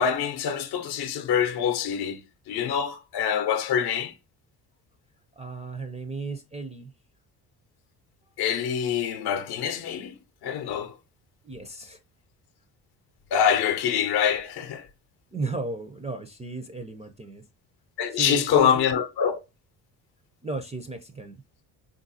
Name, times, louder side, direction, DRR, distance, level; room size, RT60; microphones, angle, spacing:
voice 1, 0.0-2.2 2.5-4.1 8.4-10.2 10.4-10.9 13.3-14.9 18.0-19.4, left 8 dB, 55° left, 0.7 m, -25 dB
voice 2, 5.4-6.9 11.4-12.0 15.3-17.4 18.1-18.9 20.4-21.4, right 3 dB, 15° right, 0.4 m, -34 dB
3.6 x 2.6 x 2.6 m
hypercardioid pair, 60°, 47 cm